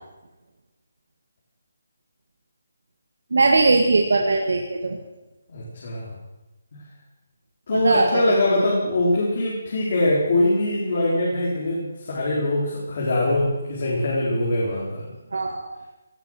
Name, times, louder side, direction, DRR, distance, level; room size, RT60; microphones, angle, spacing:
voice 1, 3.3-5.0 7.7-8.6 15.3-15.8, right 3 dB, 75° right, 2 dB, 2.0 m, -20 dB
voice 2, 5.5-6.1 7.7-15.1, left 1 dB, 45° left, -5 dB, 4.4 m, -23 dB
17.5 x 12.0 x 6.5 m, 1.1 s
hypercardioid pair, 170°, 0 cm